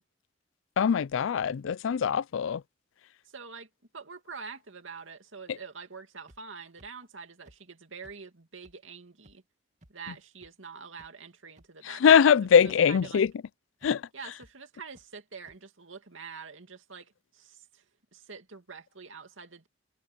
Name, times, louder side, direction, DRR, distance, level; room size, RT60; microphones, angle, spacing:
voice 1, 0.8-2.6 11.9-13.3 13.8-14.0, left 7 dB, 85° left, 0.4 m, -22 dB
voice 2, 3.2-9.4 9.9-12.2 12.6-13.3 14.1-17.8 18.1-19.7, right 5 dB, 90° right, 2.6 m, -46 dB
sound 1, 6.3-6.4 6.8-6.9 7.4-7.6 8.0-8.1 8.6-8.7 9.2-9.3 9.8-9.9 10.4-10.5 11.0-11.1 11.6-11.7 12.1-12.3 12.6-12.7 13.2-13.3 13.8-13.9 14.4-14.5 14.9-15.0 15.5-15.6, right 1 dB, 40° right, 2.2 m, -57 dB
head